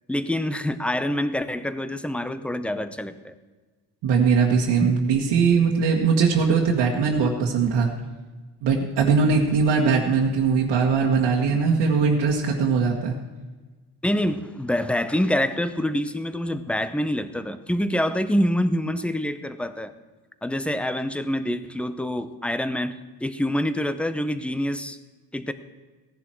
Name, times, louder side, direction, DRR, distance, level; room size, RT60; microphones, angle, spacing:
voice 1, 0.1-3.3 4.8-4.9 14.0-19.9 20.4-23.0 23.2-25.0 25.3-25.5, left 1 dB, 5° left, 12 dB, 0.6 m, -26 dB
voice 2, 4.0-7.9 8.6-13.2, right 5 dB, 85° right, -2 dB, 1.7 m, -20 dB
17.0 x 11.0 x 4.5 m, 1.3 s
cardioid pair, 135°, 41 cm